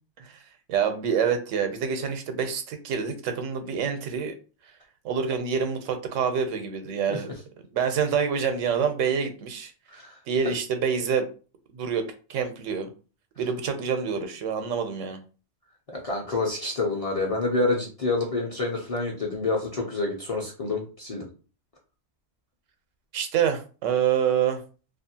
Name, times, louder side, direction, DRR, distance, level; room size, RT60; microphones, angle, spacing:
voice 1, 0.7-4.3 5.0-7.3 7.7-9.7 10.3-11.3 11.7-12.9 13.4-15.2 23.1-24.6, right 7 dB, 85° right, 7 dB, 0.9 m, -26 dB
voice 2, 16.0-21.3, left 3 dB, 45° left, -2 dB, 0.5 m, -28 dB
2.6 x 2.4 x 2.7 m, 0.36 s
omnidirectional pair, 1.3 m